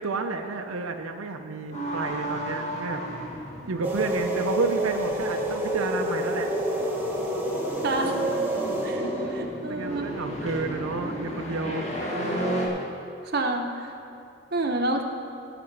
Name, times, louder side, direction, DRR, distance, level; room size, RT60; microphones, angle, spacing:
voice 1, 0.0-3.0 3.3-3.4 3.7-6.5 9.7-11.9, right 4 dB, 90° right, 4 dB, 0.6 m, -31 dB
sound 1, 1.7-12.7, equal, 30° left, 2.0 m, -34 dB
sound 2, 3.8-9.4, right 1 dB, 10° right, 1.0 m, -28 dB
voice 2, 7.8-8.1 8.8-10.1 13.3-13.9 14.5-15.0, right 2 dB, 50° right, 3 dB, 0.9 m, -28 dB
17.5 x 6.0 x 5.3 m, 2.6 s
head